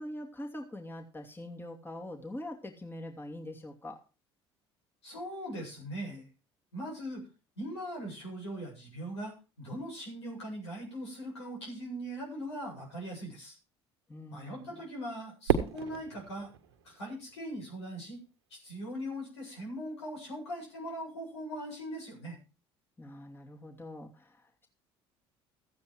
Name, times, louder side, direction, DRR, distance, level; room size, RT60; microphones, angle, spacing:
voice 1, 0.0-4.0 14.1-14.8 23.0-24.7, left 1 dB, 15° left, 3 dB, 2.6 m, -43 dB
voice 2, 5.0-6.2 6.7-7.2 7.6-13.5 14.3-16.5 16.8-18.2 18.6-22.4, equal, 85° left, -1 dB, 7.7 m, -40 dB
Fireworks, 15.5-17.8, right 8 dB, 80° right, 1.6 m, -33 dB
14.5 x 9.4 x 4.7 m, 0.31 s
hypercardioid pair, 60°, 14 cm